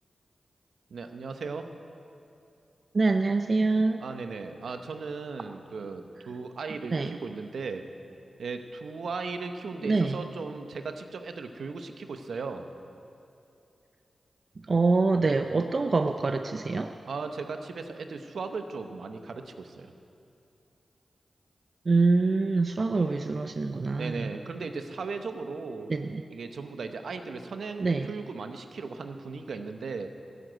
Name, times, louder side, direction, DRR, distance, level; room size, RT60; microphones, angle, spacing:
voice 1, 0.9-1.7 4.0-7.8 8.4-12.6 17.0-19.9 23.9-25.9 26.3-30.1, right 4 dB, 80° right, 7 dB, 0.9 m, -37 dB
voice 2, 2.9-4.0 6.9-7.1 9.8-10.2 14.7-16.9 21.9-24.3 25.9-26.2 27.8-28.1, right 3 dB, 55° right, 7 dB, 0.5 m, -25 dB
14.0 x 8.0 x 9.1 m, 2.7 s
cardioid pair, 45°, 0 cm